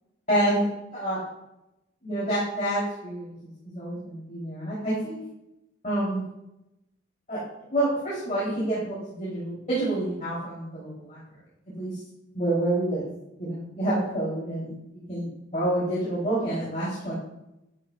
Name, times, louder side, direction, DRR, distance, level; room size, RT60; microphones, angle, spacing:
voice 1, 0.3-0.7 0.9-1.2 2.0-5.2 5.8-6.2 7.3-7.4 7.7-11.2 11.7-12.0 12.3-13.1 13.4-14.7 15.1-17.1, right 1 dB, 40° left, -8 dB, 3.2 m, -28 dB
11.0 x 9.2 x 2.4 m, 0.89 s
head